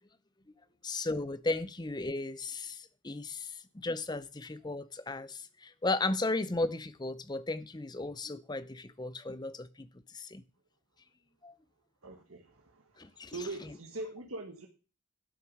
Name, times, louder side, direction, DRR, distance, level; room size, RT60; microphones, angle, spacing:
voice 1, 0.8-9.9 10.1-10.4 11.4-11.5 13.0-13.4, left 2 dB, 20° left, 0.6 m, -35 dB
voice 2, 12.0-14.7, right 2 dB, 80° right, 1.6 m, -42 dB
12.0 x 6.7 x 6.4 m
head